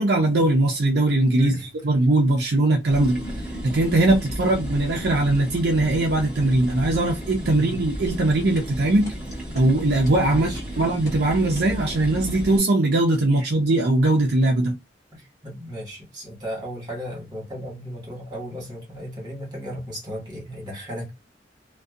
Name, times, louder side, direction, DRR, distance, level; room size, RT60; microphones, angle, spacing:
voice 1, 0.0-1.5 1.8-3.2 3.6-9.1 9.5-10.5 10.8-14.8, right 2 dB, 60° right, 0.5 m, -20 dB
voice 2, 1.4-1.8 7.4-7.8 10.2-10.6 13.4-13.5 15.4-21.1, equal, 25° right, 1.4 m, -35 dB
sound 1, 2.9-12.6, equal, 10° right, 1.3 m, -33 dB
sound 2, 8.1-11.8, equal, 20° left, 1.1 m, -42 dB
2.6 x 2.2 x 2.3 m
head